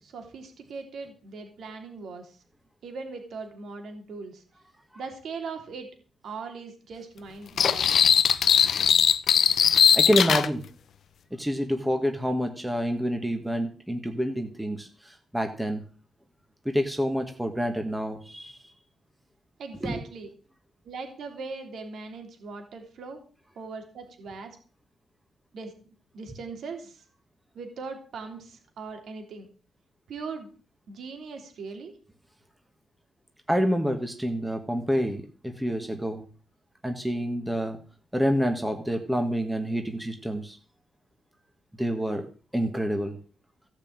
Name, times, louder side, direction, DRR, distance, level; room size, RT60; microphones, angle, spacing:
voice 1, 0.0-2.4 2.8-4.4 4.9-5.9 6.2-8.1 19.6-20.3 20.8-23.2 23.5-24.6 25.5-25.7 26.1-27.0 27.5-29.5 30.1-30.5 30.9-31.9, right 4 dB, 60° right, 4 dB, 3.4 m, -39 dB
sound 1, 7.6-10.5, left 8 dB, 55° left, 0.8 m, -20 dB
voice 2, 9.9-10.6 11.3-15.8 16.6-18.6 19.8-20.0 33.5-36.2 36.8-37.8 38.1-40.6 41.8-42.2 42.5-43.2, equal, 5° right, 5 dB, 1.6 m, -27 dB
16.0 x 6.6 x 8.9 m, 0.39 s
wide cardioid pair, 170°, 0 cm